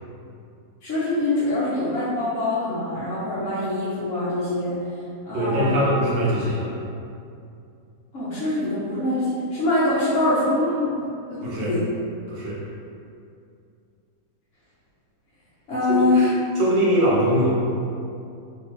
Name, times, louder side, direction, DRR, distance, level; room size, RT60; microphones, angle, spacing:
voice 1, 0.8-4.8 5.2-5.9 8.1-11.9 15.7-16.3, left 2 dB, 60° left, -11 dB, 0.8 m, -24 dB
voice 2, 5.3-6.7 11.4-11.7 12.3-12.6 15.9-16.1 16.6-17.6, equal, 80° right, -7 dB, 1.5 m, -22 dB
3.4 x 2.8 x 2.9 m, 2.5 s
omnidirectional pair, 1.8 m